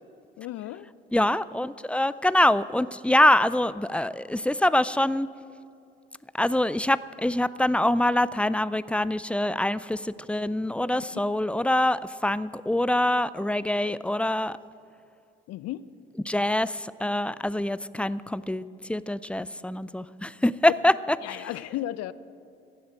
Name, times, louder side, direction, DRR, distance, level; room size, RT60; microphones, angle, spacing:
voice 1, 0.4-0.9 11.1-11.2 15.5-15.9 21.2-22.1, left 14 dB, 60° left, 17 dB, 0.5 m, -34 dB
voice 2, 1.1-5.3 6.3-14.6 16.3-21.2, left 1 dB, 5° left, 17 dB, 0.4 m, -25 dB
16.0 x 7.9 x 7.6 m, 2.5 s
hypercardioid pair, 50°, 29 cm